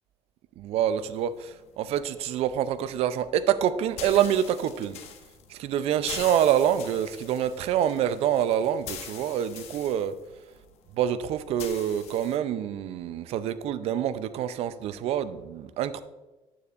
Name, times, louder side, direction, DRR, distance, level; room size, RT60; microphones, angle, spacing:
voice 1, 0.6-5.0 5.5-10.1 10.9-16.0, right 10 dB, 65° right, 13 dB, 0.5 m, -26 dB
sound 1, 0.9-12.4, left 8 dB, 70° left, 1.0 m, -44 dB
9.5 x 8.5 x 2.5 m, 1.1 s
cardioid pair, 130°, 11 cm